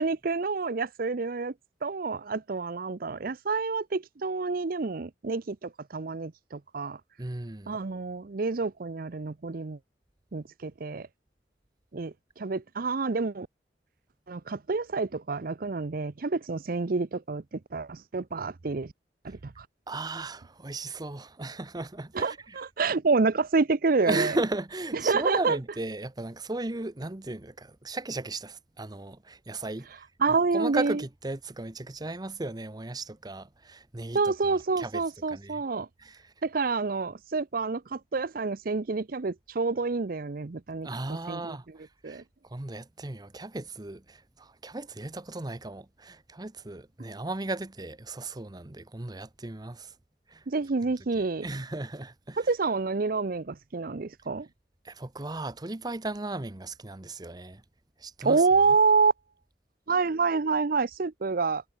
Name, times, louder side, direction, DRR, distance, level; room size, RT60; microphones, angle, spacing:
voice 1, 0.0-1.5 1.8-7.0 7.7-9.8 10.3-11.1 11.9-13.5 14.3-17.4 17.7-18.9 19.2-19.7 22.1-24.4 25.0-25.6 30.2-31.0 34.1-35.9 36.4-41.6 42.0-42.2 50.5-51.5 52.4-54.5 58.2-59.1 59.9-61.6, right 4 dB, 55° right, 0.6 m, -28 dB
voice 2, 7.2-7.8 19.9-22.6 24.1-29.9 30.5-35.0 35.3-35.6 36.0-36.2 40.8-42.2 42.5-49.9 50.3-50.4 51.4-52.4 54.8-57.6 58.0-58.4, right 2 dB, 25° right, 0.9 m, -36 dB
head